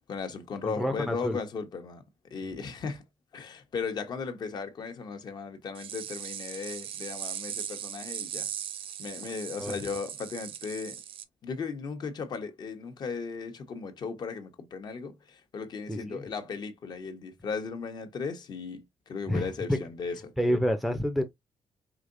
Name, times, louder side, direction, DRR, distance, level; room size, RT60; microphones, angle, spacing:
voice 1, 0.1-2.0 2.3-3.0 3.3-8.5 9.0-11.0 11.4-20.3, left 5 dB, 45° left, 1.0 m, -36 dB
voice 2, 0.6-1.4 9.6-9.8 15.9-16.2 19.3-19.8 20.4-21.2, equal, ahead, 0.6 m, -28 dB
sound 1, 5.7-11.2, right 9 dB, 65° right, 0.7 m, -39 dB
5.0 x 3.8 x 2.6 m
wide cardioid pair, 175°, 10 cm